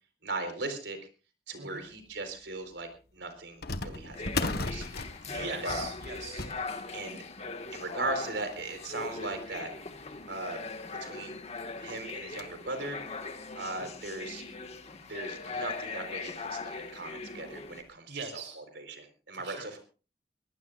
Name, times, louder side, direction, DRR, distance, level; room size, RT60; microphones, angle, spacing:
voice 1, 0.2-1.0 1.5-2.9 3.1-5.9 6.9-7.2 7.7-9.7 10.3-10.6 11.0-11.4 11.8-13.0 13.5-14.4 15.1-19.8, right 2 dB, 90° right, 7 dB, 4.2 m, -38 dB
sound 1, 2.2-2.3 3.6-10.5 11.1-11.2 11.4-11.6 12.0-12.7 13.2-13.3 14.1-14.2 14.6-14.7 16.1-16.4 16.8-16.9 17.5-17.7, left 3 dB, 60° left, 1.6 m, -39 dB
sound 2, 4.1-17.8, left 4 dB, 40° left, 1.8 m, -40 dB
voice 2, 5.2-6.5 18.1-18.6 19.3-19.8, right 4 dB, 70° right, 2 dB, 3.6 m, -41 dB
24.0 x 18.5 x 2.5 m, 0.36 s
head